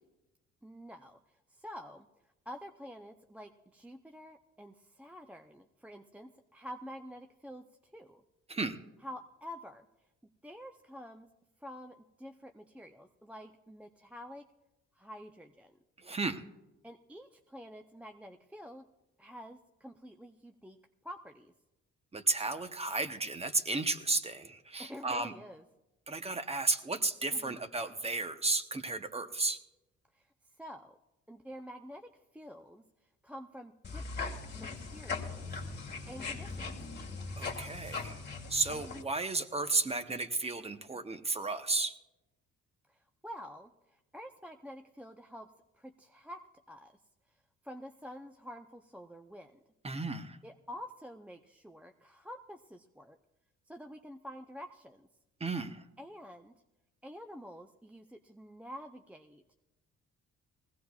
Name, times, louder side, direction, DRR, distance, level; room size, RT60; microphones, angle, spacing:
voice 1, 0.6-2.1 2.5-7.6 7.9-8.2 9.0-9.9 10.4-11.3 11.6-14.5 15.0-15.8 16.8-18.8 19.2-20.8 21.0-21.5 24.8-25.6 27.3-27.6 30.1-30.3 30.6-31.0 31.3-32.8 33.2-35.5 36.1-36.8 38.7-39.0 42.9-46.4 46.7-47.0 47.3-47.4 47.6-49.6 50.4-53.2 53.7-55.1 56.0-56.5 57.0-59.5, equal, 5° right, 5 dB, 0.5 m, -48 dB
voice 2, 16.0-16.4 22.1-25.3 26.1-29.6 37.4-38.2 38.5-42.0 49.8-50.4 55.4-55.8, right 3 dB, 20° right, 9 dB, 0.9 m, -33 dB
sound 1, 33.8-39.0, left 4 dB, 35° left, 2.0 m, -40 dB
20.0 x 16.5 x 2.4 m, 0.99 s
cardioid pair, 90°, 30 cm